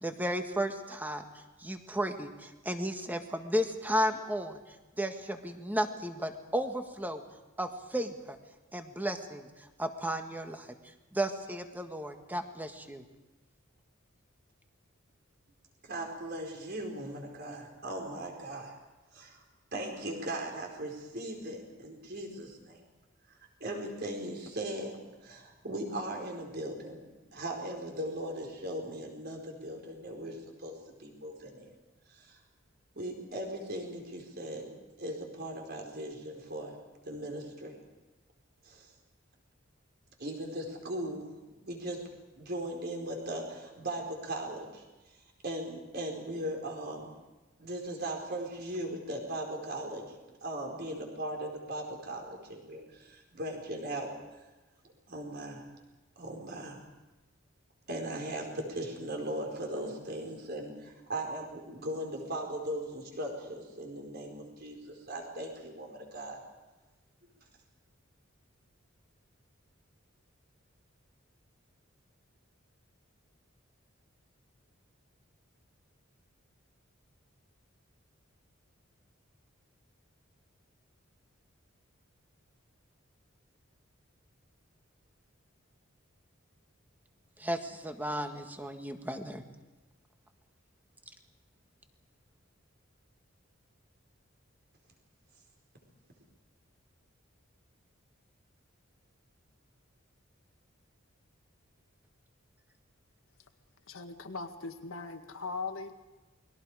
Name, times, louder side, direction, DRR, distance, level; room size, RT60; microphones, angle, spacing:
voice 1, 0.0-1.2 1.6-4.6 5.0-7.2 7.6-8.4 8.7-9.5 9.8-10.7 11.1-13.0 87.4-89.4, equal, 10° right, 5 dB, 1.7 m, -34 dB
voice 2, 15.8-18.7 19.1-19.4 19.7-22.8 23.3-27.0 27.3-31.7 32.1-32.4 32.9-34.7 35.0-36.8 37.0-37.8 38.6-38.9 40.2-41.3 41.6-42.0 42.3-44.8 45.4-47.1 47.6-54.1 55.1-55.6 56.2-56.8 57.9-66.4, right 1 dB, 50° right, 1 dB, 4.7 m, -38 dB
voice 3, 103.9-105.9, left 4 dB, 85° left, 6 dB, 1.9 m, -39 dB
29.0 x 22.0 x 5.0 m, 1.1 s
head